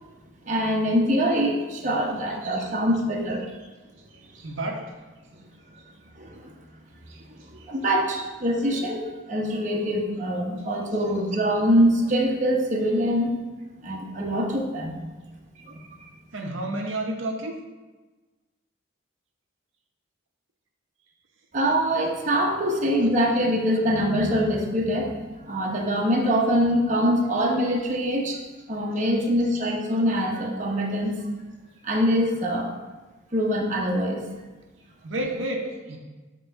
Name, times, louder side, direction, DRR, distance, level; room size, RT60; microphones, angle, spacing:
voice 1, 0.4-3.5 6.2-6.4 7.5-9.0 9.3-13.3 13.8-15.0 15.6-15.8 21.5-25.2 25.5-28.4 28.7-31.1 31.8-32.7 33.3-34.2, equal, 35° right, -1 dB, 0.8 m, -24 dB
voice 2, 4.3-5.0 7.1-7.2 7.6-7.7 16.3-17.6 35.0-36.0, right 1 dB, 70° right, 1 dB, 0.8 m, -30 dB
7.9 x 3.0 x 5.5 m, 1.2 s
head